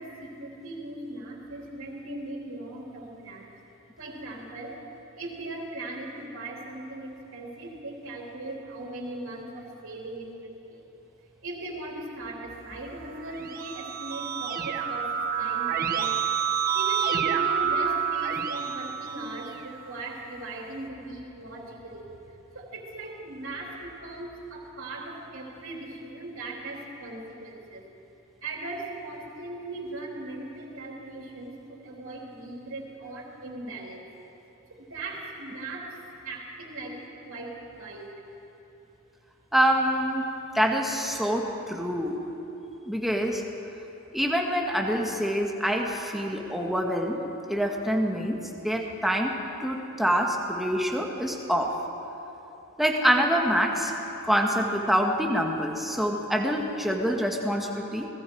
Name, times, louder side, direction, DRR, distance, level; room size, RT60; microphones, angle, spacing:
voice 1, 0.0-3.5 4.0-4.9 5.1-10.8 11.4-16.2 16.7-27.8 28.4-34.0 34.7-36.0 36.2-38.1, right 2 dB, 60° right, -2 dB, 3.6 m, -39 dB
Keyboard (musical), 13.2-19.8, right 7 dB, 40° right, 1.4 m, -28 dB
voice 2, 39.5-40.3 40.5-42.2 42.9-43.4 44.1-48.4 48.6-51.8 52.8-53.9 54.2-58.1, equal, ahead, 0 dB, 1.7 m, -26 dB
28.5 x 19.5 x 4.8 m, 3.0 s
head